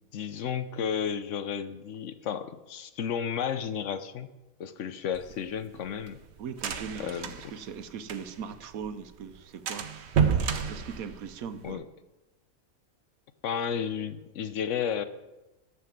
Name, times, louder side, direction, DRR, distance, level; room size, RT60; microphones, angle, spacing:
voice 1, 0.1-4.3 4.6-6.2 7.0-7.3 11.6-11.8 13.4-15.0, left 7 dB, 65° left, 11 dB, 1.0 m, -32 dB
sound 1, 5.1-8.6 8.8-8.9 9.2-9.4 9.7-11.7, right 7 dB, 55° right, 1.0 m, -30 dB
voice 2, 6.4-9.9 10.7-11.8, right 7 dB, 85° right, 11 dB, 1.2 m, -39 dB
12.5 x 5.8 x 7.4 m, 1.0 s
omnidirectional pair, 1.5 m